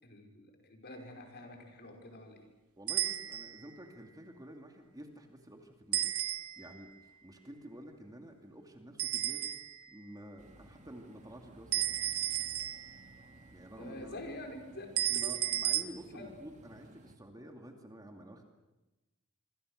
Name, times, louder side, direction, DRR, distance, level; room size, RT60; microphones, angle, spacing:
voice 1, 0.0-2.5 13.8-14.9 15.2-15.3 16.1-16.3, left 1 dB, 50° left, 2 dB, 5.5 m, -47 dB
voice 2, 2.8-6.1 6.6-6.9 7.2-9.5 9.9-11.8 13.5-14.2 15.1-18.4, right 1 dB, 15° right, 3 dB, 2.5 m, -50 dB
sound 1, 2.9-3.7 5.9-6.8 9.0-9.9 11.7-13.1 15.0-15.8, right 13 dB, 75° right, 1.2 m, -33 dB
sound 2, 10.4-17.2, right 1 dB, 35° right, 2.7 m, -57 dB
26.0 x 26.0 x 6.6 m, 1.0 s
head